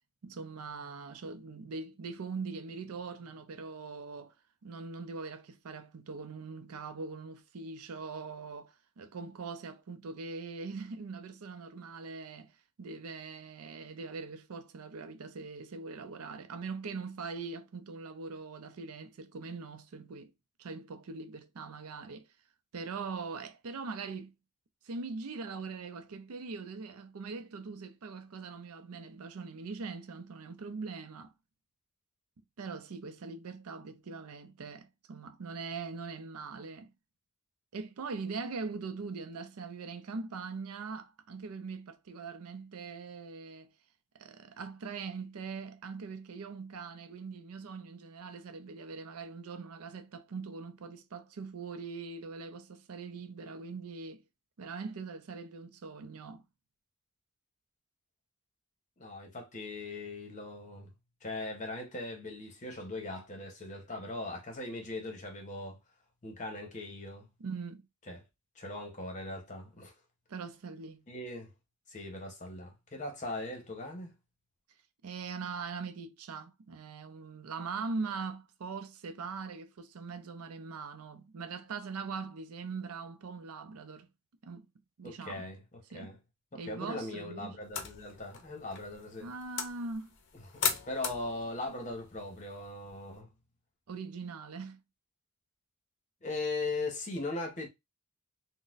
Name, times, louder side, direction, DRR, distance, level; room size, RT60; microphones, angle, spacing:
voice 1, 0.2-4.4 4.6-20.3 20.6-22.3 22.7-24.3 24.8-31.3 32.6-36.9 37.7-43.7 44.1-54.2 54.6-56.4 67.4-67.8 70.3-71.0 75.0-84.1 84.4-84.7 85.0-85.5 85.9-86.1 86.5-87.6 89.2-90.1 93.9-94.8, right 4 dB, 75° right, 0.5 m, -42 dB
voice 2, 59.0-60.9 61.2-65.8 66.2-67.3 68.1-68.2 68.6-69.9 71.1-71.5 71.9-74.1 85.0-85.6 85.9-86.2 86.5-89.3 90.3-93.3 96.2-97.7, left 2 dB, 35° left, 0.9 m, -39 dB
sound 1, 87.6-93.2, left 7 dB, 55° left, 0.6 m, -39 dB
3.9 x 2.1 x 2.5 m
head